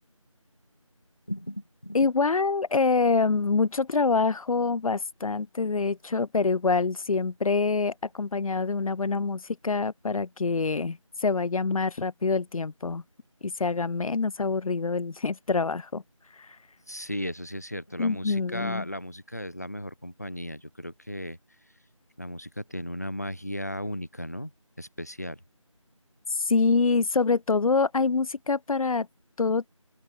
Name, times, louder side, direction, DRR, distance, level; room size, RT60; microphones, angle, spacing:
voice 1, 1.3-2.1 16.9-21.4 22.2-24.5 24.8-25.4, equal, 30° left, 0.8 m, -36 dB
voice 2, 1.9-13.0 13.4-16.0 16.4-16.5 18.0-18.9 26.3-29.1 29.4-29.6, left 4 dB, 90° left, 0.4 m, -25 dB
open air
figure-of-eight pair, 175°, 17 cm